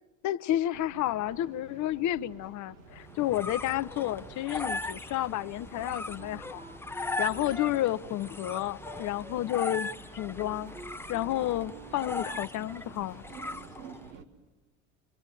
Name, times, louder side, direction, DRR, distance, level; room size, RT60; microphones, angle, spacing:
voice 1, 0.2-6.6 6.9-10.7 11.1-13.2, left 14 dB, 45° left, 0.8 m, -31 dB
sound 1, 0.7-14.2, right 6 dB, 65° right, 2.5 m, -52 dB
sound 2, 2.9-14.1, left 2 dB, 5° left, 0.8 m, -39 dB
Wind instrument woodwind instrument, 6.2-12.5, right 2 dB, 15° right, 1.4 m, -49 dB
27.5 x 23.5 x 9.1 m
hypercardioid pair, 70°, 41 cm